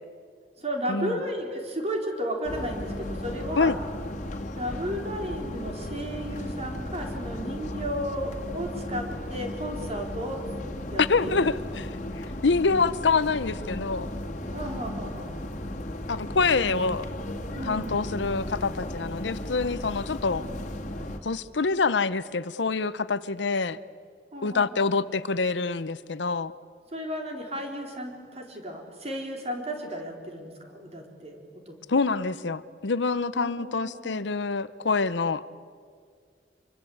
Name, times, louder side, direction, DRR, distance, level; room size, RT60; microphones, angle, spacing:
voice 1, 0.6-3.8 4.5-10.4 10.9-11.4 14.5-15.3 17.5-18.3 24.3-25.1 26.9-31.7 33.3-34.2, equal, 35° right, 2 dB, 4.0 m, -34 dB
sound 1, 2.4-21.2, left 1 dB, 45° left, 2.3 m, -35 dB
voice 2, 11.0-11.8 12.2-14.1 16.1-17.1 17.7-20.4 21.2-23.8 24.4-26.5 31.9-35.4, left 4 dB, 85° left, 16 dB, 0.8 m, -26 dB
26.0 x 24.0 x 8.6 m, 2.1 s
head